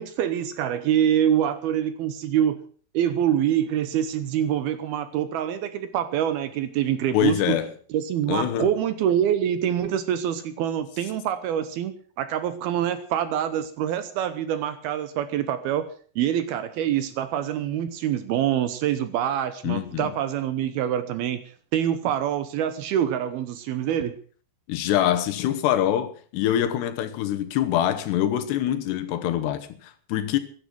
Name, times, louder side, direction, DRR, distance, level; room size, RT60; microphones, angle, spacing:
voice 1, 0.0-2.6 2.9-7.6 7.9-15.9 16.2-21.4 21.7-24.1, right 10 dB, 75° right, 2.6 m, -25 dB
voice 2, 7.1-7.7 8.3-8.7 19.6-20.1 24.7-30.4, left 11 dB, 75° left, 3.2 m, -24 dB
15.5 x 11.5 x 6.2 m
omnidirectional pair, 5.0 m